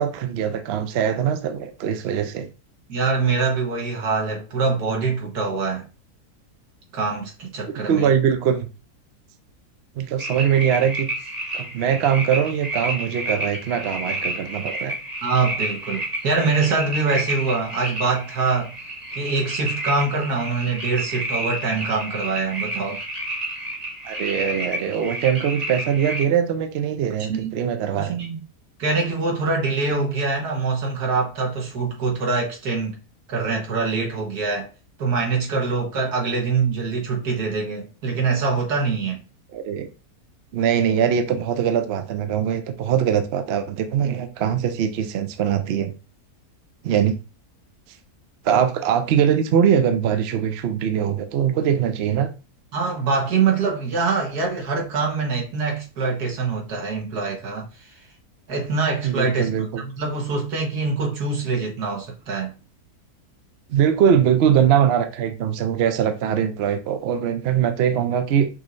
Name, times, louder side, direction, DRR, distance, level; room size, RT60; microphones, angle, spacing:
voice 1, 0.0-2.5 7.7-8.7 10.0-11.1 11.5-14.9 24.0-28.2 39.5-39.9 40.5-45.9 46.8-47.2 48.4-52.3 59.0-59.8 63.7-68.5, right 8 dB, 60° right, 0.6 m, -22 dB
voice 2, 2.9-5.9 6.9-8.1 15.2-18.7 19.1-23.0 27.3-27.6 28.0-28.4 28.8-33.0 33.3-34.7 35.0-39.2 52.7-58.0 58.5-62.6, right 4 dB, 75° right, 1.8 m, -24 dB
sound 1, 10.2-26.3, right 1 dB, 25° right, 1.2 m, -30 dB
6.2 x 3.1 x 2.5 m
omnidirectional pair, 1.7 m